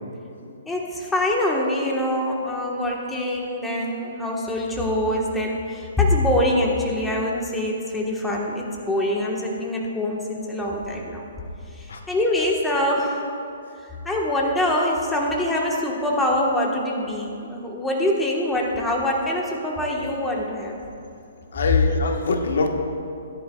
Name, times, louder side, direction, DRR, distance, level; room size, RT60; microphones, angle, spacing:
voice 1, 0.7-11.2 11.7-13.3 14.0-20.8, left 1 dB, 5° left, -2 dB, 1.3 m, -24 dB
voice 2, 21.5-22.7, left 3 dB, 75° left, 3 dB, 1.3 m, -24 dB
18.5 x 10.0 x 2.3 m, 2.5 s
hypercardioid pair, 150°, 0 cm